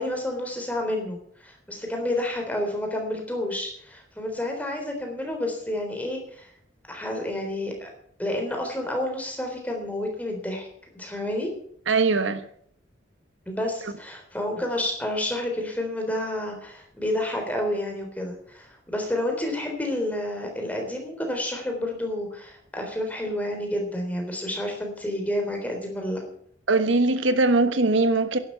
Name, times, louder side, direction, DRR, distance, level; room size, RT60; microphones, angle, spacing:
voice 1, 0.0-6.5 6.9-7.9 8.2-10.7 10.9-11.5 13.5-26.2, left 1 dB, 10° left, 3.6 m, -30 dB
voice 2, 11.9-12.4 26.7-28.4, right 3 dB, 85° right, 1.3 m, -21 dB
11.5 x 11.0 x 8.3 m
head